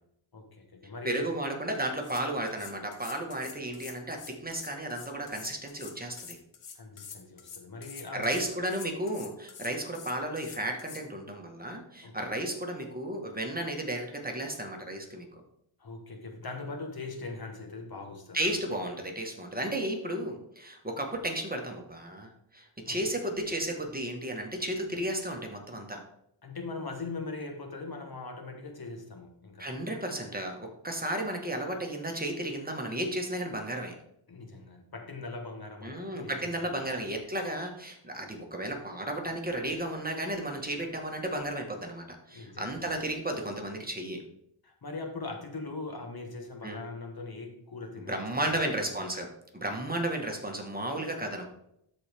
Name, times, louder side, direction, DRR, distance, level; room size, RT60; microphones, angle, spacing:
voice 1, 0.3-1.3 6.7-8.3 12.0-12.3 15.8-18.4 22.9-23.0 26.4-29.7 34.3-36.9 42.3-42.9 44.6-49.0, left 3 dB, 45° left, 3 dB, 1.3 m, -41 dB
voice 2, 1.0-6.4 8.1-15.3 18.3-26.0 29.6-33.9 35.8-44.2 46.6-46.8 48.1-49.3 49.5-51.5, right 1 dB, 20° right, 2 dB, 1.4 m, -33 dB
sound 1, 1.7-11.0, left 7 dB, 75° left, 1.1 m, -47 dB
12.5 x 4.4 x 3.5 m, 0.76 s
wide cardioid pair, 85°, 50 cm